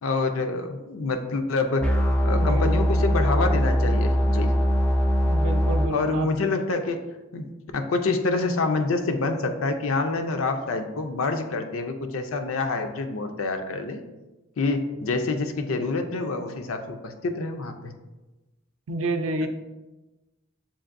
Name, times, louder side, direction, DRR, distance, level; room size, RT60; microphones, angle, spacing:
voice 1, 0.0-4.5 5.9-7.0 7.3-7.4 7.7-14.0 14.6-17.9, left 3 dB, 85° left, 6 dB, 0.5 m, -27 dB
sound 1, 1.8-5.9, equal, 5° left, 0.4 m, -21 dB
voice 2, 2.4-2.8 5.3-6.3 18.9-19.5, right 1 dB, 75° right, 6 dB, 0.4 m, -29 dB
7.1 x 2.6 x 2.5 m, 1.1 s
head